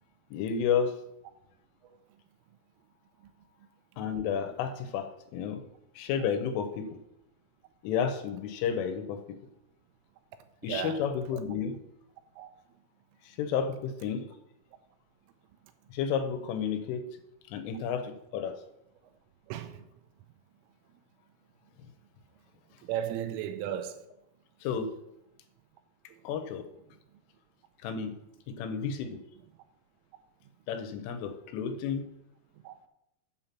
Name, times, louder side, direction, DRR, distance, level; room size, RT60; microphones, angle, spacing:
voice 1, 0.3-0.9 4.0-5.6 6.0-6.9 7.8-9.4 10.6-11.8 13.3-14.2 15.9-17.1 17.5-18.6 24.6-24.9 26.2-26.7 27.8-28.2 28.5-29.2 30.7-32.0, left 7 dB, 80° left, 3.4 m, -31 dB
voice 2, 10.7-11.0 12.4-12.5 19.5-19.8 22.8-24.0 32.6-32.7, right 10 dB, 85° right, 3.4 m, -34 dB
8.7 x 5.7 x 7.5 m
omnidirectional pair, 5.8 m